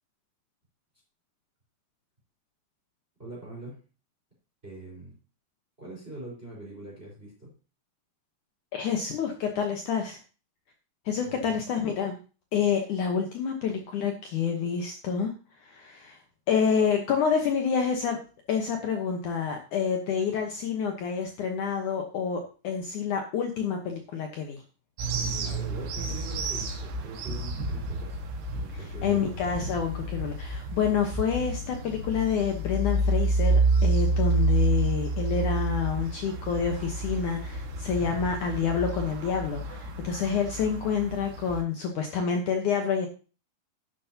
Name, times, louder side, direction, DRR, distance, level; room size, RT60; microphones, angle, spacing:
voice 1, 3.2-3.8 4.6-5.1 5.8-7.5 11.2-11.6 25.1-28.2 28.5-29.2, right 2 dB, 15° right, -2 dB, 4.5 m, -42 dB
voice 2, 8.7-10.2 11.1-12.2 12.5-15.3 15.6-16.2 16.5-18.2 18.5-24.6 28.7-43.1, left 6 dB, 65° left, 3 dB, 2.2 m, -28 dB
sound 1, 25.0-41.6, right 2 dB, 85° right, 3.6 m, -29 dB
11.5 x 10.5 x 2.8 m, 0.35 s
omnidirectional pair, 4.6 m